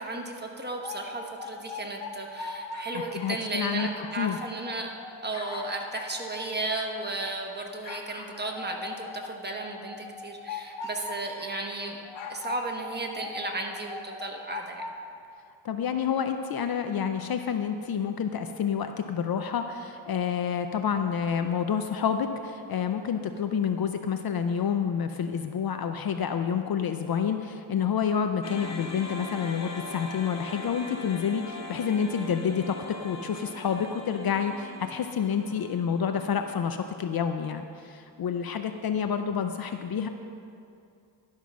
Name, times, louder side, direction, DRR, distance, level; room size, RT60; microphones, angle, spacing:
voice 1, 0.0-4.9 5.2-12.0 12.3-14.8, right 2 dB, 20° right, 2 dB, 1.0 m, -34 dB
sound 1, 0.7-3.4 3.7-7.4 7.8-11.6 12.0-15.0, left 4 dB, 65° left, 1.1 m, -40 dB
voice 2, 3.1-3.9 4.2-4.4 15.6-32.8 33.0-40.1, left 7 dB, 50° left, 7 dB, 0.5 m, -28 dB
sound 2, 28.4-36.7, left 2 dB, 35° left, 0.9 m, -41 dB
11.5 x 5.6 x 6.1 m, 2.5 s
cardioid pair, 115°, 49 cm